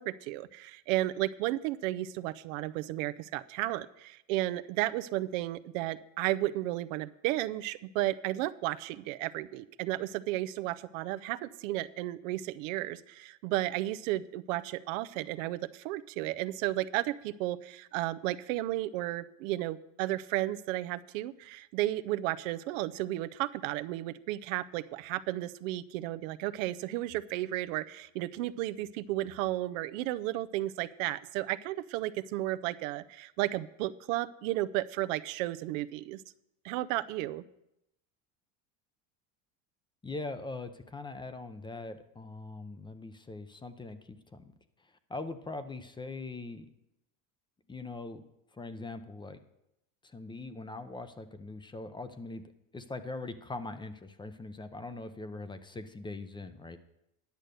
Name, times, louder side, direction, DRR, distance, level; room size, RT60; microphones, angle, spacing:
voice 1, 0.0-36.2 36.6-37.4, right 16 dB, 85° right, 15 dB, 0.6 m, -33 dB
voice 2, 40.0-44.5 45.1-46.7 47.7-48.2 48.5-49.4 50.0-52.4 52.7-56.8, left 3 dB, 10° left, 11 dB, 0.6 m, -41 dB
10.5 x 6.4 x 6.7 m, 0.85 s
supercardioid pair, 115°, 38 cm